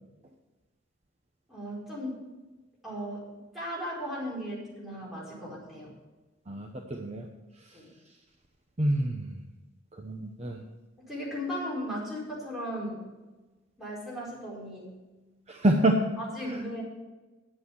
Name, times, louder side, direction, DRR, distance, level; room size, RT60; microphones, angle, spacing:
voice 1, 1.5-2.1 2.8-5.9 7.7-7.9 11.1-13.1 13.8-14.9 16.2-16.8, equal, ahead, -6 dB, 4.6 m, -36 dB
voice 2, 6.5-7.3 7.6-7.8 8.8-9.4 9.9-10.6 15.5-16.1 16.4-16.6, right 1 dB, 35° right, 3 dB, 0.9 m, -27 dB
9.9 x 8.4 x 7.0 m, 1.2 s
head